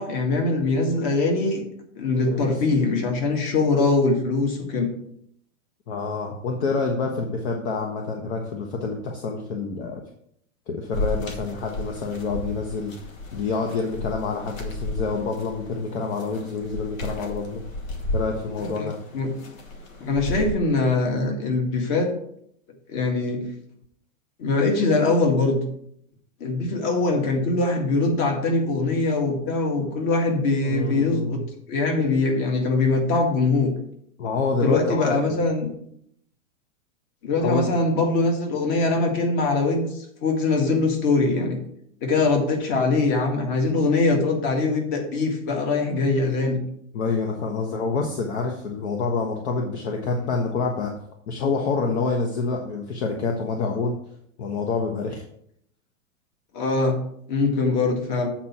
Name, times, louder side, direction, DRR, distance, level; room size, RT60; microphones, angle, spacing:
voice 1, 0.0-1.6 2.0-4.9 18.6-18.9 19.1-19.3 20.0-22.1 22.9-23.4 24.4-25.6 26.4-31.4 31.7-33.7 34.6-35.7 37.2-41.6 42.0-46.6 56.5-57.0 57.3-58.3, left 3 dB, 40° left, 3 dB, 1.9 m, -22 dB
voice 2, 5.9-10.0 10.7-12.9 13.3-17.6 18.1-19.0 30.6-31.5 34.2-35.4 37.4-37.6 46.9-50.9 51.3-54.0 54.4-55.2, left 4 dB, 55° left, 2 dB, 1.2 m, -27 dB
sound 1, 10.9-20.5, left 1 dB, 75° left, 2.1 m, -34 dB
8.2 x 4.3 x 5.9 m, 0.70 s
hypercardioid pair, 150°, 40 cm